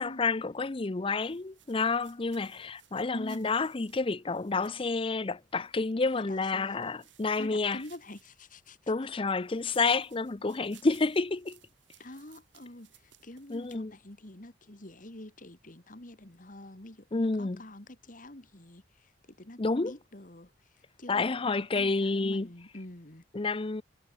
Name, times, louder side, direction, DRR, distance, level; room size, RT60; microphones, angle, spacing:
voice 1, 0.0-7.8 8.9-11.6 13.5-13.9 17.1-17.6 19.6-19.9 21.1-22.5 23.3-23.8, left 3 dB, 30° left, 0.6 m, -29 dB
sound 1, 1.2-5.9 6.7-8.8 9.4-13.8, right 12 dB, 80° right, 7.2 m, -62 dB
voice 2, 3.1-3.5 6.0-7.0 7.4-8.9 12.0-23.2, left 1 dB, 45° left, 2.5 m, -46 dB
head